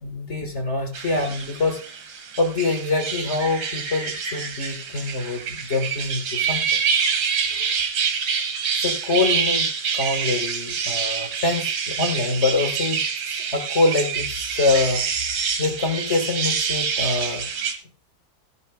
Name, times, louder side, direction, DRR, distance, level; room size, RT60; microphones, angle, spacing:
voice 1, 0.0-1.8 2.4-6.6 7.5-7.7 8.8-9.7 9.9-15.0 15.6-17.5, left 3 dB, 40° left, 5 dB, 1.9 m, -25 dB
sound 1, 0.9-17.7, right 6 dB, 90° right, 2.1 m, -26 dB
15.0 x 10.5 x 2.4 m, 0.34 s
omnidirectional pair, 2.0 m